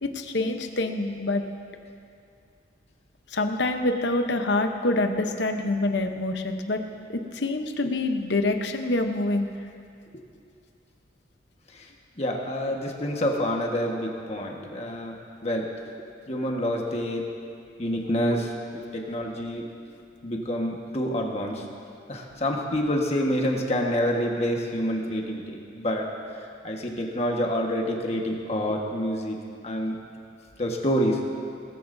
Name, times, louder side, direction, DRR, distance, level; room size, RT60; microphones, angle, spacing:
voice 1, 0.0-1.4 3.3-6.8 7.1-9.5, left 2 dB, 70° left, 6 dB, 0.9 m, -26 dB
voice 2, 12.2-15.7 16.3-17.3 17.8-19.7 20.2-21.6 22.1-26.1 26.6-29.4 29.6-30.0 30.6-31.3, equal, 35° left, 0 dB, 1.4 m, -27 dB
19.0 x 14.0 x 2.7 m, 2.4 s
head